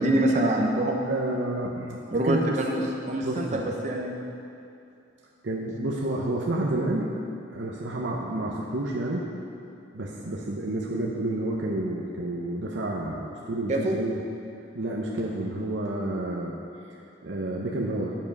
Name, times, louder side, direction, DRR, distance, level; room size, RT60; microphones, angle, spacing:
voice 1, 0.0-1.0 2.1-2.8 3.1-4.2 13.7-14.0, right 1 dB, 40° right, 0 dB, 0.7 m, -25 dB
voice 2, 1.1-2.6 3.2-3.7 5.4-7.2 7.5-9.3 9.9-14.3 14.7-16.6 17.2-18.2, right 1 dB, 80° right, -3 dB, 0.8 m, -30 dB
9.6 x 7.3 x 5.4 m, 2.6 s
head